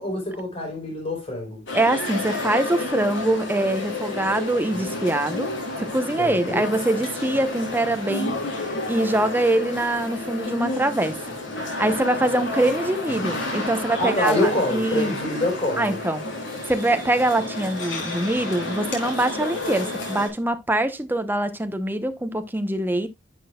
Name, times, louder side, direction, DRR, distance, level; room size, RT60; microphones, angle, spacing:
voice 1, 0.0-1.6 6.2-6.7 14.0-16.0, left 1 dB, 30° left, 4.1 m, -25 dB
sound 1, 1.7-20.3, left 2 dB, 70° left, 3.6 m, -31 dB
voice 2, 1.7-5.5 5.8-11.1 11.8-15.1 15.8-16.2 16.7-23.1, right 1 dB, 10° right, 0.9 m, -24 dB
11.0 x 6.2 x 2.3 m
head